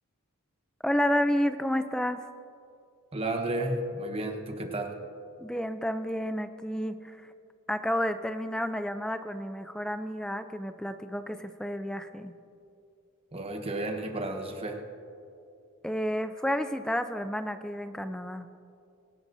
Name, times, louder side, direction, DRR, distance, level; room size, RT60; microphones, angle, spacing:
voice 1, 0.8-2.2 5.4-7.3 7.7-12.3 15.8-18.5, equal, 5° left, 9 dB, 0.4 m, -30 dB
voice 2, 3.1-5.0 13.3-14.8, right 1 dB, 25° right, 4 dB, 1.0 m, -32 dB
24.0 x 11.0 x 2.7 m, 2.5 s
head